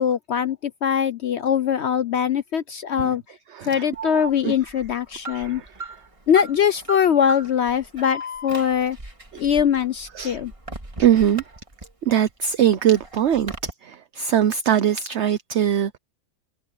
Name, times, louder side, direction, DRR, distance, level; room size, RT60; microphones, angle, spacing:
voice 1, 0.0-3.2 3.6-5.6 6.3-9.0 9.4-10.5, left 8 dB, 65° left, 0.7 m, -22 dB
voice 2, 3.5-3.8 4.4-4.5 5.3-5.9 10.1-10.4 11.0-11.4 12.0-16.0, right 10 dB, 55° right, 0.9 m, -21 dB
Alarm, 3.9-12.1 12.5-13.7, right 2 dB, 20° right, 2.4 m, -37 dB
omnidirectional pair, 1.7 m